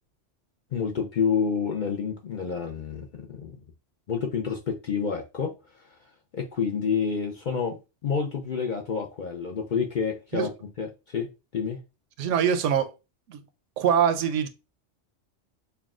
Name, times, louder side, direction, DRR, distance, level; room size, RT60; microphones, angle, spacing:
voice 1, 0.7-3.6 4.1-6.0 6.3-7.8 8.0-10.5 10.8-11.3 11.5-11.8, left 6 dB, 55° left, 0.5 m, -29 dB
voice 2, 12.2-12.9 13.3-13.4 13.8-14.5, right 8 dB, 80° right, 0.9 m, -23 dB
5.7 x 2.2 x 2.4 m
omnidirectional pair, 1.2 m